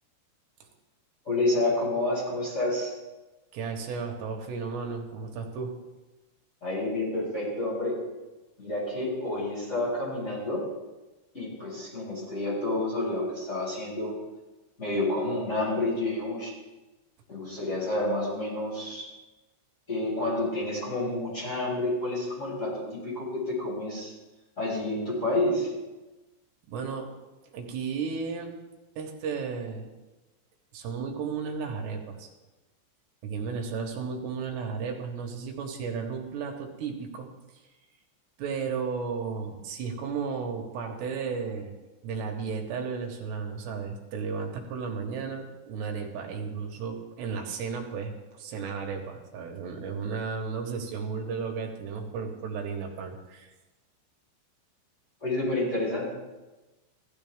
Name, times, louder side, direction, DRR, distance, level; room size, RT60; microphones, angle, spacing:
voice 1, 1.2-2.9 6.6-8.0 8.6-10.6 11.3-14.1 14.8-16.5 17.3-19.1 19.9-24.1 24.6-25.7 55.2-56.1, left 2 dB, 15° left, -7 dB, 5.4 m, -29 dB
voice 2, 3.5-5.7 26.7-27.1 27.5-28.5 29.0-29.9 30.7-32.3 33.2-37.3 38.4-41.7 42.0-53.5, right 5 dB, 70° right, 2 dB, 3.0 m, -34 dB
16.0 x 12.5 x 3.6 m, 1.1 s
omnidirectional pair, 5.6 m